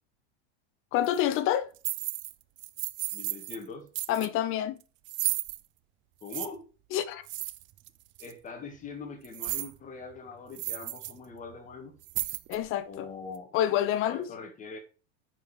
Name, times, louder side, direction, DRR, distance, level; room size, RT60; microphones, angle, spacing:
voice 1, 0.9-1.7 4.1-4.8 6.9-7.3 12.5-13.1 13.5-14.3, left 11 dB, 40° left, 1.0 m, -27 dB
sound 1, 1.0-1.2 1.8-2.3 2.6-3.6 3.9-4.3 5.0-5.6 6.3-6.5 7.3-7.9 8.2-8.3 9.2-9.7 10.1-10.2 10.5-11.1 11.4-11.6 12.0-12.7, right 17 dB, 35° right, 0.6 m, -34 dB
voice 2, 3.1-3.9 6.2-6.6 8.2-12.0 12.8-13.5 14.1-14.8, left 4 dB, 25° left, 2.0 m, -42 dB
9.9 x 4.9 x 5.0 m
supercardioid pair, 140°, 33 cm